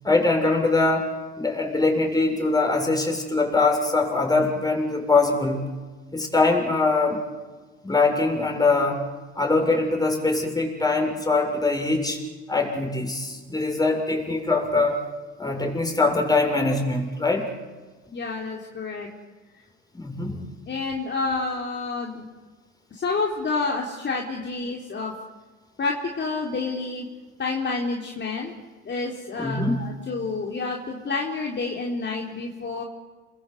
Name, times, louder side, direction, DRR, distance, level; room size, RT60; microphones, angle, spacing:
voice 1, 0.0-1.1 1.4-5.6 6.1-7.2 7.8-9.0 9.4-12.2 12.5-15.0 15.4-17.5 19.9-20.4 29.4-29.8, left 3 dB, 10° left, 2 dB, 7.3 m, -22 dB
voice 2, 18.1-19.1 20.7-22.3 22.9-25.1 25.8-27.1 27.4-28.5 28.9-32.8, left 3 dB, 35° left, -1 dB, 3.7 m, -29 dB
28.5 x 23.0 x 8.2 m, 1.4 s
supercardioid pair, 95°, 33 cm